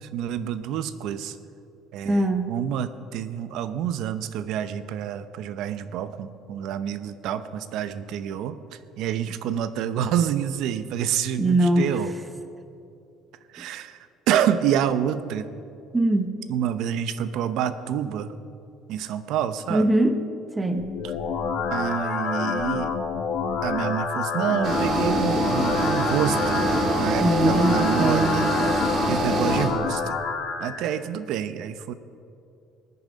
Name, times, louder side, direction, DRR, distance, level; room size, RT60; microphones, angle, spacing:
voice 1, 0.0-1.3 1.9-8.6 9.0-12.1 13.5-14.0 14.3-15.5 16.5-18.3 18.9-19.9 21.0-21.1 21.7-22.9 23.6-26.6 27.0-30.2 30.6-31.9, right 9 dB, 65° right, 12 dB, 0.7 m, -28 dB
voice 2, 2.1-2.5 11.4-11.9 15.9-16.3 19.7-20.2 20.6-20.9 27.2-28.5, right 1 dB, 15° right, 8 dB, 0.9 m, -21 dB
sound 1, 20.8-30.8, left 5 dB, 55° left, 1.4 m, -28 dB
sound 2, 24.6-29.7, right 2 dB, 45° right, 2.3 m, -25 dB
20.5 x 9.6 x 5.2 m, 2.6 s
cardioid pair, 155°, 0 cm